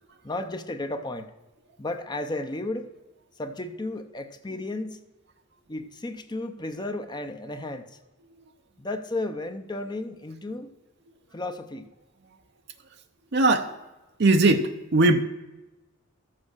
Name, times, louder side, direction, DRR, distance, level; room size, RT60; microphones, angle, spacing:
voice 1, 0.2-1.3 1.8-2.9 3.4-5.0 5.7-8.0 8.8-10.7 11.3-11.9, left 2 dB, 20° left, 0.7 m, -33 dB
voice 2, 13.3-13.7 14.2-15.2, right 2 dB, 55° right, 0.6 m, -20 dB
13.0 x 7.6 x 6.4 m
head